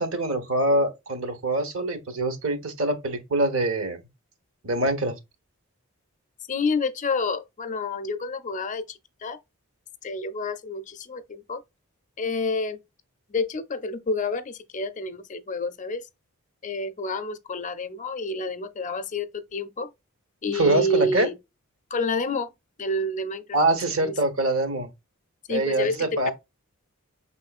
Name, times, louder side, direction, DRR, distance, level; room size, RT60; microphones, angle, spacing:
voice 1, 0.0-4.0 4.6-5.1 20.5-21.3 23.5-24.9 25.5-26.3, right 2 dB, 65° right, 1.1 m, -24 dB
voice 2, 6.5-9.4 10.0-11.6 12.2-12.8 13.3-16.1 16.6-19.9 20.4-21.3 21.9-22.5 22.8-23.6 24.0-24.1 25.5-26.0, left 2 dB, 35° left, 0.5 m, -29 dB
5.8 x 3.6 x 2.4 m
head